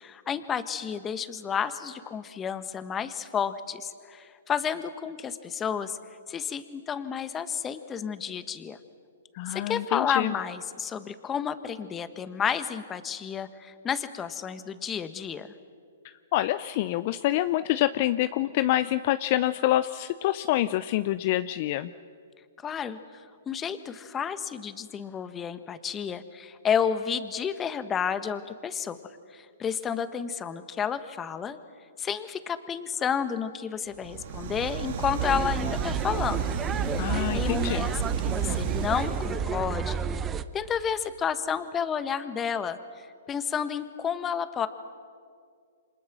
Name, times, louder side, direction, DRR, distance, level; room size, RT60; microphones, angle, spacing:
voice 1, 0.0-6.0 6.3-8.8 9.5-15.5 22.6-29.0 29.3-31.6 32.0-37.0 37.3-40.0 40.5-44.7, left 7 dB, 20° left, 11 dB, 1.4 m, -31 dB
voice 2, 9.3-10.3 16.3-21.9 37.0-37.9, left 15 dB, 45° left, 13 dB, 0.6 m, -26 dB
sound 1, 33.9-39.7, right 7 dB, 55° right, 2.6 m, -32 dB
sound 2, 35.2-40.4, right 6 dB, 20° right, 0.9 m, -31 dB
28.5 x 26.0 x 6.2 m, 2.2 s
hypercardioid pair, 125°, 0 cm